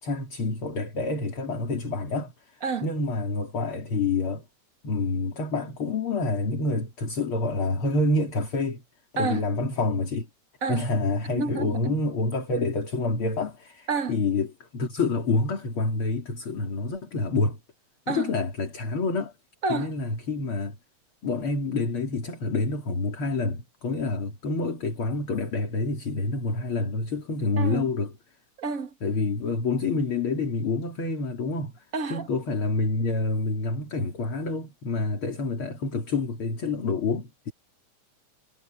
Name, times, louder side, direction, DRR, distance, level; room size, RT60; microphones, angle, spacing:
voice 1, 0.0-2.3 2.8-4.4 4.8-8.8 9.1-10.3 10.7-17.6 18.1-19.3 19.7-20.8 21.2-28.1 29.0-37.5, left 3 dB, 45° left, 3.6 m, -27 dB
voice 2, 11.3-11.9 13.9-14.2 18.1-18.3 19.6-19.9 27.6-27.9 28.6-28.9 31.9-32.3, right 4 dB, 35° right, 1.5 m, -29 dB
omnidirectional pair, 3.3 m